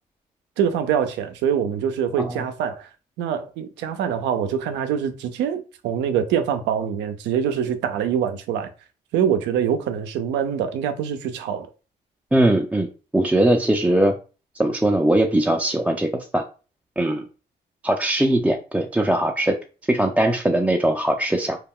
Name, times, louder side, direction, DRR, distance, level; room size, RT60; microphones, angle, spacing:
voice 1, 0.6-2.9 3.2-8.7 9.1-11.7, right 8 dB, 90° right, 0.4 m, -24 dB
voice 2, 12.3-12.9 13.1-14.1 14.5-16.4 17.0-17.3 17.8-19.6 19.9-21.6, right 1 dB, 5° right, 0.4 m, -20 dB
2.3 x 2.1 x 3.5 m
supercardioid pair, 65°, 18 cm